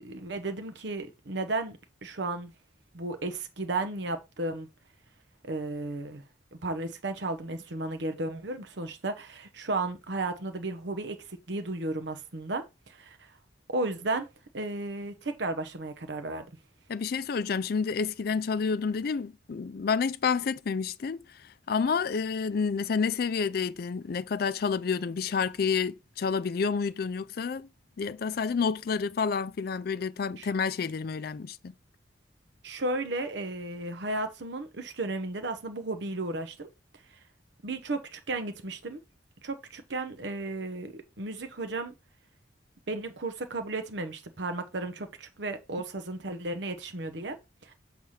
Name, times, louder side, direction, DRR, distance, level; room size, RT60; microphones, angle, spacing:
voice 1, 0.0-2.5 2.9-4.7 5.4-6.2 6.5-13.3 13.7-14.3 14.5-16.5 30.4-30.5 32.6-36.7 37.6-39.0 39.4-41.9 42.9-47.4 47.6-47.7, right 2 dB, 75° right, 0.9 m, -34 dB
voice 2, 16.9-27.7 28.0-31.7, left 5 dB, 55° left, 0.4 m, -29 dB
6.3 x 3.4 x 5.7 m
head